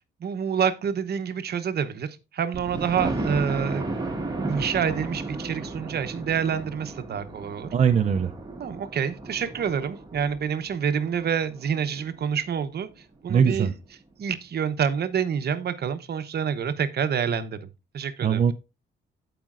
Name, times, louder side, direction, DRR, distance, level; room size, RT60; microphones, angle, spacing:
voice 1, 0.2-3.8 4.5-7.7 8.6-12.9 13.2-13.7 14.2-17.7 17.9-18.4, right 7 dB, 55° right, 0.9 m, -27 dB
Thunder, 2.5-12.3 12.8-12.9 13.3-13.4 13.7-13.8, right 2 dB, 20° right, 1.8 m, -34 dB
voice 2, 7.7-8.3 13.3-13.7 18.2-18.5, right 7 dB, 35° right, 0.5 m, -21 dB
15.0 x 5.1 x 2.5 m
cardioid pair, 90°, 20 cm